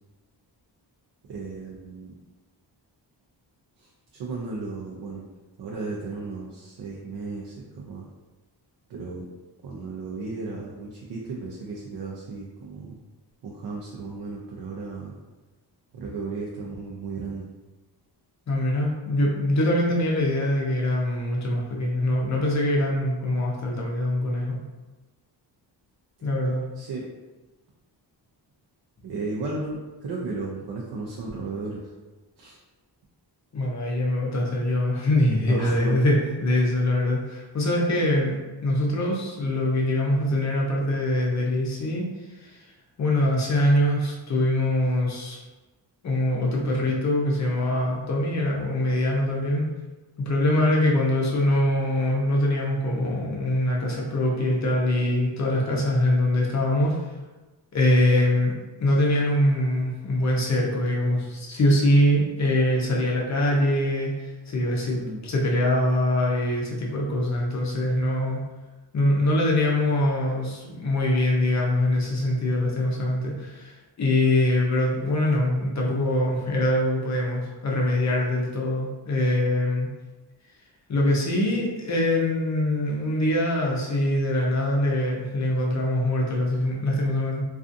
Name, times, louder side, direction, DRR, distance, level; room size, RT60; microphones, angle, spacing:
voice 1, 1.3-2.2 3.8-5.2 5.6-8.0 8.9-9.3 9.6-13.0 13.4-15.2 15.9-17.5 26.8-27.0 29.0-31.8 32.4-32.6 35.5-36.0 65.0-65.2 75.8-75.9, right 3 dB, 60° right, -4 dB, 0.5 m, -34 dB
voice 2, 18.5-24.6 26.2-26.7 33.5-42.1 42.4-42.6 43.0-45.4 46.0-49.7 50.2-57.1 57.7-58.5 58.8-68.4 68.9-79.9 80.9-87.4, left 1 dB, 40° left, -2 dB, 0.5 m, -23 dB
2.5 x 2.4 x 2.5 m, 1.2 s
wide cardioid pair, 165°, 43 cm